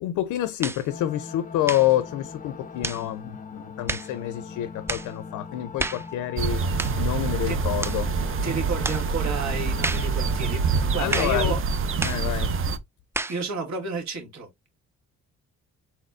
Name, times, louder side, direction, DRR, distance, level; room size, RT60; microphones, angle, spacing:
voice 1, 0.0-6.6 7.0-8.1 11.0-11.6 12.0-12.5, left 13 dB, 90° left, 0.5 m, -27 dB
sound 1, 0.6-0.9 1.6-1.9 2.8-3.1 3.9-4.1 4.9-5.1 5.8-6.1 6.8-7.0 7.8-8.0 8.8-9.1 9.8-10.1 11.1-11.4 12.0-12.3 13.1-13.4, right 2 dB, 10° right, 0.3 m, -30 dB
sound 2, 0.9-11.1, left 5 dB, 25° left, 0.7 m, -41 dB
sound 3, 6.4-12.8, right 5 dB, 45° right, 0.6 m, -26 dB
voice 2, 8.4-11.6 13.3-14.5, right 3 dB, 65° right, 2.1 m, -31 dB
4.2 x 4.2 x 2.5 m
cardioid pair, 90°, 30 cm